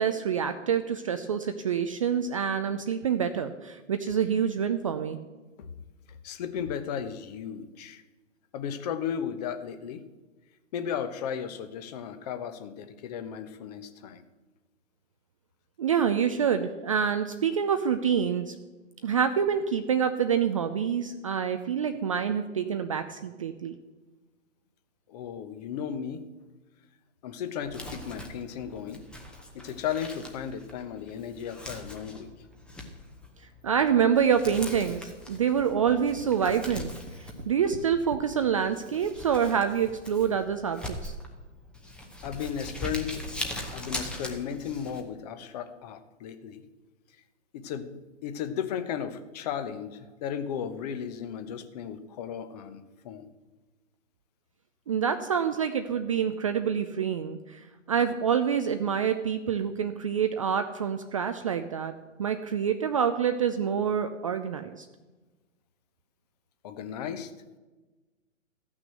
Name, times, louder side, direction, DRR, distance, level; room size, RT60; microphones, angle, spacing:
voice 1, 0.0-5.2 15.8-18.6 19.0-23.7 33.6-36.9 37.2-41.1 54.9-61.9 62.2-64.8, right 7 dB, 25° right, 8 dB, 0.4 m, -27 dB
voice 2, 6.1-8.0 8.5-10.1 10.7-14.2 25.1-26.3 27.2-29.0 29.5-32.3 42.2-43.2 43.7-46.6 47.5-53.3 66.6-67.3, left 8 dB, 30° left, 10 dB, 0.9 m, -35 dB
Crumpling crinkling, 27.6-45.0, left 1 dB, 5° left, 0.7 m, -41 dB
Tap, 35.3-38.3 39.1-39.2 39.5-39.6, equal, 90° right, 1.8 m, -44 dB
14.5 x 6.2 x 7.6 m, 1.2 s
figure-of-eight pair, 130°, 38 cm